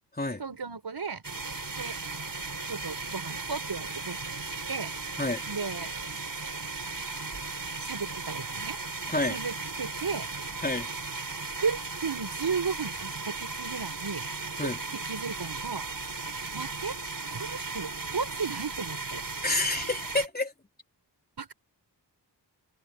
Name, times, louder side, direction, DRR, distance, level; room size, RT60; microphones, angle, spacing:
voice 1, 0.4-1.2 1.7-1.9 2.7-4.4 4.7-4.9 5.5-5.9 7.8-8.8 9.3-10.3 11.6-14.3 14.6-15.8 16.5-17.0 17.3-19.2 21.4-21.5, right 5 dB, 65° right, 4.9 m, -34 dB
sound 1, 1.2-20.3, right 3 dB, 50° right, 6.3 m, -36 dB
voice 2, 19.4-20.5, left 2 dB, 20° left, 3.7 m, -28 dB
wide cardioid pair, 60°, 42 cm